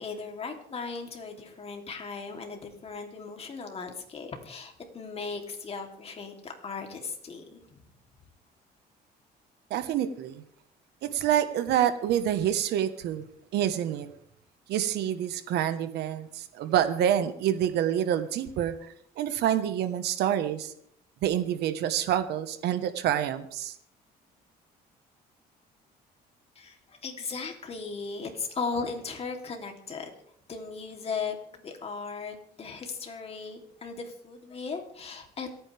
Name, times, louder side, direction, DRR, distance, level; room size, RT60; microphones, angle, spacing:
voice 1, 0.0-7.8 26.5-30.1 30.5-35.6, left 4 dB, 35° left, 3 dB, 3.2 m, -37 dB
voice 2, 9.7-10.4 11.1-13.2 13.5-14.1 14.7-20.7 21.2-23.7, right 10 dB, 80° right, 10 dB, 1.4 m, -27 dB
27.5 x 9.6 x 3.5 m, 0.65 s
cardioid pair, 110°, 17 cm